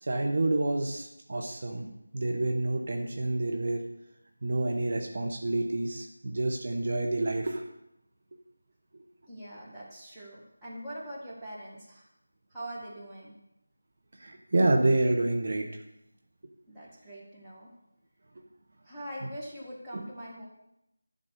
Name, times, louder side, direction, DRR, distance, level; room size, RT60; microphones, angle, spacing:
voice 1, 0.1-1.9 2.1-3.8 4.4-7.6 14.2-15.7, right 2 dB, 50° right, 2 dB, 1.0 m, -28 dB
voice 2, 9.3-12.1 12.5-13.4 16.7-17.7 18.8-20.4, right 1 dB, 5° right, -9 dB, 1.7 m, -43 dB
11.0 x 3.9 x 6.7 m, 0.85 s
figure-of-eight pair, 170°, 0 cm